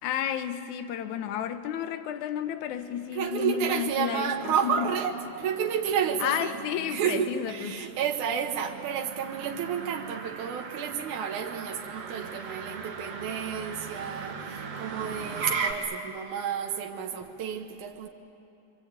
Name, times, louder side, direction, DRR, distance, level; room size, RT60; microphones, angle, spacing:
voice 1, 0.0-4.9 6.2-7.9, left 10 dB, 80° left, 2.4 m, -32 dB
Motor vehicle (road), 2.6-15.7, right 5 dB, 55° right, 2.7 m, -39 dB
voice 2, 3.1-6.6 6.9-18.1, right 8 dB, 80° right, 2.7 m, -31 dB
28.0 x 23.5 x 8.7 m
omnidirectional pair, 3.4 m